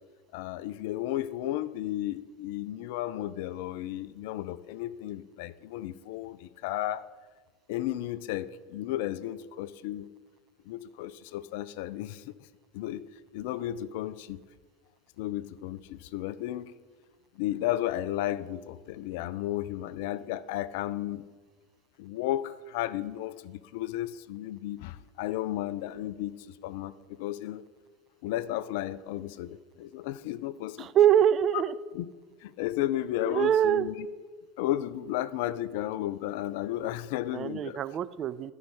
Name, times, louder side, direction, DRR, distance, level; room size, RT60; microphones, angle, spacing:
voice 1, 0.3-7.0 7.7-10.1 10.7-12.3 12.7-13.0 13.3-14.4 15.2-16.7 17.4-21.2 22.0-27.6 28.2-30.9 31.9-32.1 32.4-33.9 34.6-37.8, left 13 dB, 65° left, 16 dB, 0.3 m, -33 dB
voice 2, 30.8-31.7 33.3-33.9 37.3-38.5, right 10 dB, 40° right, 15 dB, 0.4 m, -24 dB
12.0 x 5.3 x 4.8 m, 1.4 s
hypercardioid pair, 80°, 0 cm